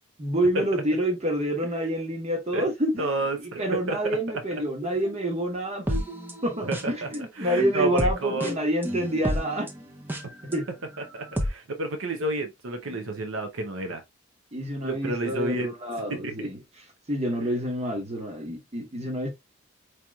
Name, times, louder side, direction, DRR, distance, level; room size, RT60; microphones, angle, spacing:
voice 1, 0.2-6.0 6.4-9.7 10.4-10.7 12.9-13.1 14.5-16.6 17.1-19.3, right 1 dB, 30° right, 1.3 m, -28 dB
voice 2, 3.0-4.2 6.6-7.1 7.4-8.5 11.1-14.0 14.8-16.5, right 2 dB, 80° right, 0.7 m, -30 dB
sound 1, 4.8-7.2 7.6-10.6 11.0-11.5, equal, 10° right, 0.6 m, -31 dB
4.8 x 2.9 x 2.3 m
head